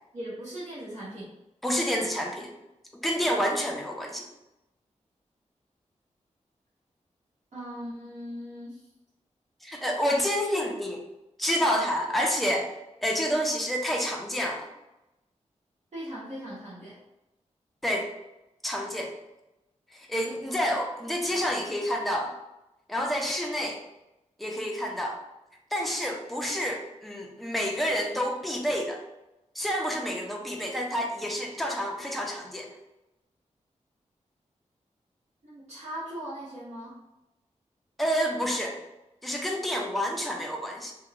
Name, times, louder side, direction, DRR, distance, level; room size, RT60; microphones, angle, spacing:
voice 1, 0.1-1.3 7.5-8.8 10.5-10.7 15.9-17.0 35.4-37.0, equal, 65° right, -11 dB, 1.3 m, -39 dB
voice 2, 1.6-2.5 2.9-4.3 9.6-11.0 11.4-12.7 13.0-14.7 17.8-18.1 18.6-19.1 19.9-22.3 22.9-23.8 24.4-25.2 25.7-29.0 29.5-32.7 38.0-38.8 39.2-40.9, equal, ahead, 0 dB, 0.5 m, -29 dB
2.8 x 2.1 x 2.5 m, 0.95 s
wide cardioid pair, 75°, 13 cm